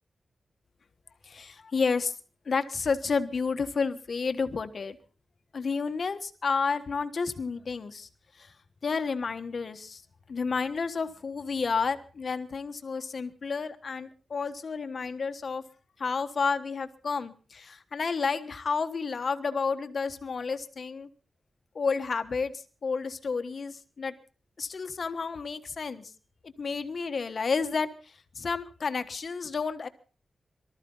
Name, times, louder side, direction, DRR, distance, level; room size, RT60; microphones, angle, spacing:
voice 1, 1.2-2.1 2.4-5.0 5.5-8.1 8.3-8.5 8.8-10.0 10.3-15.6 16.0-21.1 21.7-24.1 24.6-26.1 26.4-29.9, left 5 dB, 55° left, 9 dB, 1.4 m, -31 dB
23.5 x 13.5 x 4.0 m, 0.37 s
wide cardioid pair, 115°, 0 cm